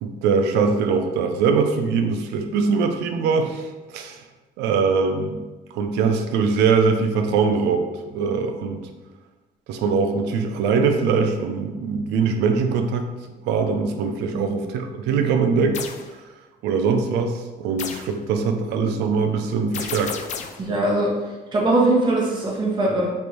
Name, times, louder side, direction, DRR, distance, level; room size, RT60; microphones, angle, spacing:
voice 1, 0.0-4.2 4.6-5.4 5.7-8.9 9.7-13.0 13.4-15.8 16.6-20.1, right 5 dB, 90° right, 5 dB, 0.5 m, -22 dB
sound 1, 15.7-16.1 17.8-18.2 19.7-20.7, left 7 dB, 45° left, 0.4 m, -32 dB
voice 2, 20.6-21.1 21.5-23.1, right 2 dB, 25° right, -4 dB, 1.0 m, -21 dB
3.3 x 2.6 x 4.4 m, 1.2 s
cardioid pair, 110°, 17 cm